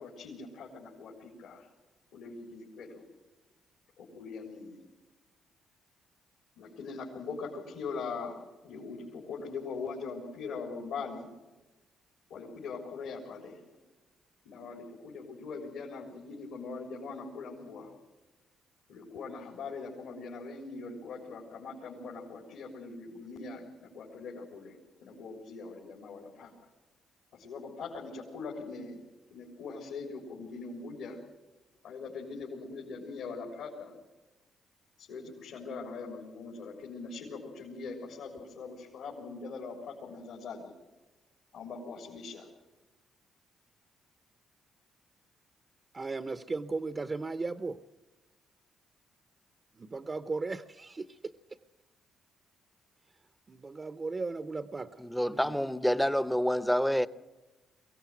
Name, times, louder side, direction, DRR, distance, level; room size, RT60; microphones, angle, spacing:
voice 1, 0.0-1.7 2.1-3.0 4.0-4.8 6.6-11.3 12.3-13.6 14.4-17.9 18.9-26.5 27.3-29.0 29.3-31.2 31.8-33.9 35.0-40.7 41.5-42.5, left 4 dB, 80° left, 3.9 m, -42 dB
voice 2, 45.9-47.8 49.7-51.3 53.5-55.6, right 3 dB, 30° right, 0.7 m, -36 dB
voice 3, 55.1-57.1, equal, ahead, 0.8 m, -27 dB
22.5 x 17.0 x 9.1 m
cardioid pair, 90°, 0 cm